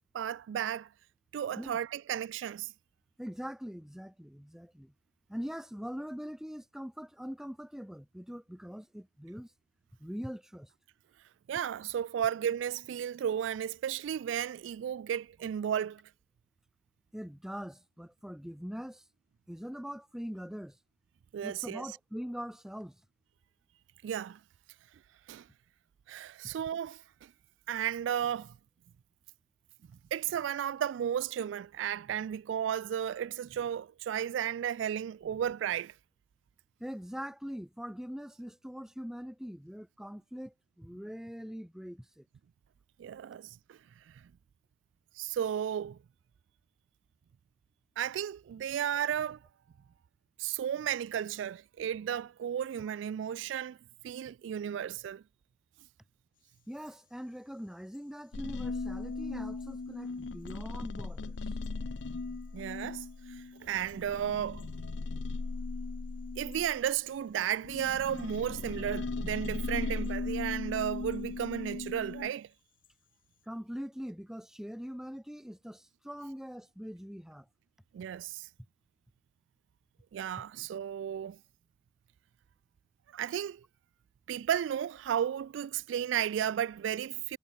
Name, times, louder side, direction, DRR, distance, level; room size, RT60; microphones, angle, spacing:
voice 1, 0.1-0.9 1.3-2.7 11.5-16.0 21.3-21.8 24.0-24.4 25.3-25.5 26.1-27.3 27.7-28.6 30.1-35.9 43.0-43.8 44.1-44.2 45.2-46.0 48.0-49.4 50.4-53.8 54.0-55.2 62.5-64.7 66.4-72.5 77.9-78.5 80.1-81.4 83.1-83.6 84.3-87.4, right 9 dB, 80° right, 0.3 m, -34 dB
voice 2, 3.2-4.9 5.3-9.5 10.0-10.7 17.1-19.0 19.5-20.8 21.4-23.0 36.8-42.3 56.7-61.4 73.5-77.5 80.4-80.5, equal, 5° right, 0.8 m, -42 dB
sound 1, 56.3-73.5, left 11 dB, 50° left, 6.4 m, -72 dB
sound 2, 58.3-67.1 67.6-72.3, left 3 dB, 70° left, 0.7 m, -38 dB
head